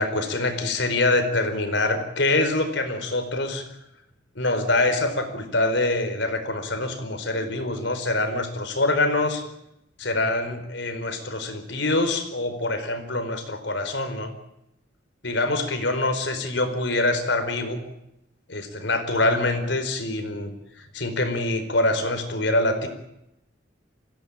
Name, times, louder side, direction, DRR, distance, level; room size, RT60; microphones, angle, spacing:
voice 1, 0.0-3.6 4.3-9.4 10.0-14.3 15.2-17.8 18.5-20.5 20.8-22.9, left 2 dB, 70° left, 8 dB, 4.5 m, -25 dB
26.5 x 17.0 x 8.9 m, 0.84 s
head